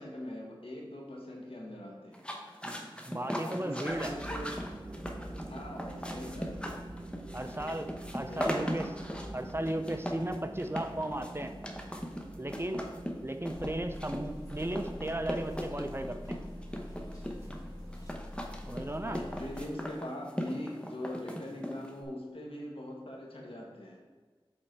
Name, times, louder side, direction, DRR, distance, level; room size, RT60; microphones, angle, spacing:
voice 1, 0.0-2.2 3.3-4.5 5.5-6.6 8.3-9.0 9.4-9.6 19.0-24.0, left 1 dB, 70° left, -1 dB, 1.5 m, -42 dB
sound 1, 2.1-22.0, equal, 10° left, 0.9 m, -39 dB
voice 2, 2.6-4.2 7.3-8.9 9.3-11.5 12.4-12.9 13.2-16.4 18.7-19.2, right 1 dB, 25° right, 7 dB, 0.5 m, -36 dB
sound 2, 3.9-18.1, right 1 dB, 55° right, 0.8 m, -46 dB
sound 3, 13.5-19.6, left 1 dB, 35° left, 1.7 m, -45 dB
7.7 x 3.8 x 4.5 m, 1.4 s
wide cardioid pair, 40°, 10 cm